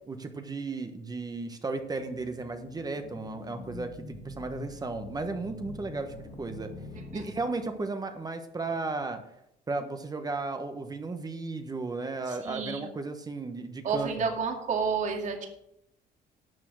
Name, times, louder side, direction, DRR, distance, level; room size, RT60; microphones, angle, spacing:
voice 1, 0.1-6.7 7.1-9.2 9.7-14.2, right 3 dB, 20° right, 7 dB, 1.2 m, -35 dB
sound 1, 1.6-8.0, left 3 dB, 60° left, 2.2 m, -45 dB
voice 2, 12.4-12.8 13.8-15.5, right 5 dB, 45° right, 3 dB, 2.3 m, -30 dB
11.0 x 6.8 x 6.3 m, 0.78 s
cardioid pair, 110°, 17 cm